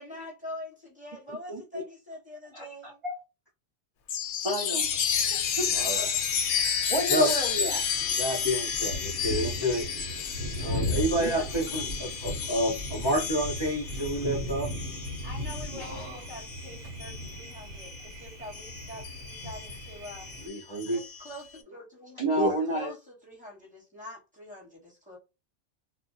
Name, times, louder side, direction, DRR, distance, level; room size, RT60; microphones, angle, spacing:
voice 1, 0.0-3.0 5.9-6.2 15.2-20.3 20.9-25.2, left 1 dB, 5° right, 1.2 m, -44 dB
voice 2, 1.3-1.8 2.5-3.1 4.4-4.9 5.3-5.7 6.1-6.2 6.9-7.8 11.2-11.5 15.7-16.2 22.2-22.9, right 1 dB, 35° right, 0.6 m, -31 dB
Chime, 4.1-18.1 18.5-21.4, left 7 dB, 75° left, 0.9 m, -32 dB
Thunder, 4.8-20.5, equal, 75° right, 1.1 m, -38 dB
voice 3, 5.7-6.1 7.1-7.3 8.2-9.8 10.6-14.7 20.4-21.0 22.3-22.6, equal, 30° left, 0.5 m, -29 dB
2.5 x 2.1 x 3.9 m
omnidirectional pair, 1.3 m